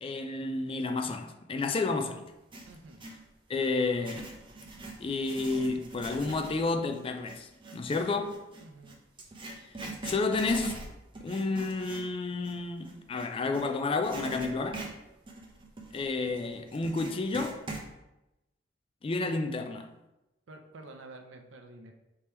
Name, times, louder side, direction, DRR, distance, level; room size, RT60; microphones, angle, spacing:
voice 1, 0.0-2.2 3.5-4.3 5.0-8.4 10.0-10.8 11.2-14.8 15.9-17.6 19.0-19.9, left 3 dB, 30° left, 0.3 m, -31 dB
Writing, 2.3-3.2 3.8-13.7 14.0-17.9, right 2 dB, 25° right, 0.6 m, -43 dB
voice 2, 2.7-3.0 8.6-9.0 20.5-21.9, right 2 dB, 75° right, 0.6 m, -49 dB
3.4 x 2.9 x 4.4 m
head